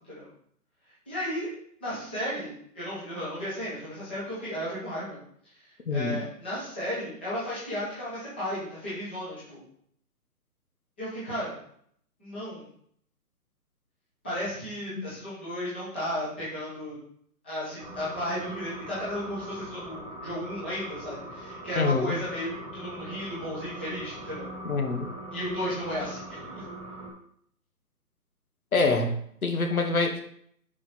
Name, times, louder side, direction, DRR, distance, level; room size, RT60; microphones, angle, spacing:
voice 1, 1.1-1.5 1.8-5.2 5.9-9.6 11.0-11.5 12.2-12.6 14.2-17.0 17.4-24.5 25.3-26.6, equal, 5° left, -12 dB, 1.2 m, -34 dB
voice 2, 5.9-6.2 15.0-15.1 21.7-22.1 24.6-25.1 28.7-30.2, left 3 dB, 60° left, 5 dB, 1.6 m, -26 dB
sound 1, 17.8-27.1, right 1 dB, 15° right, 1.7 m, -41 dB
10.5 x 5.1 x 4.3 m, 0.67 s
hypercardioid pair, 180°, 48 cm